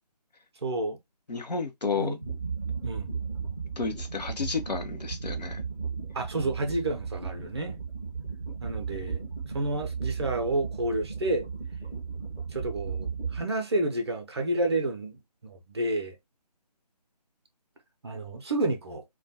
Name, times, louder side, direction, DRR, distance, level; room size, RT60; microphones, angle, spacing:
voice 1, 0.6-1.0 2.0-2.2 2.8-3.2 6.1-7.8 8.6-9.2 9.5-11.5 12.5-16.2 18.0-19.0, right 2 dB, 40° right, 0.6 m, -30 dB
voice 2, 1.3-2.1 3.8-5.6, left 4 dB, 80° left, 0.7 m, -31 dB
sound 1, 2.2-13.5, right 5 dB, 5° left, 0.6 m, -35 dB
2.4 x 2.2 x 2.7 m
figure-of-eight pair, 155°, 21 cm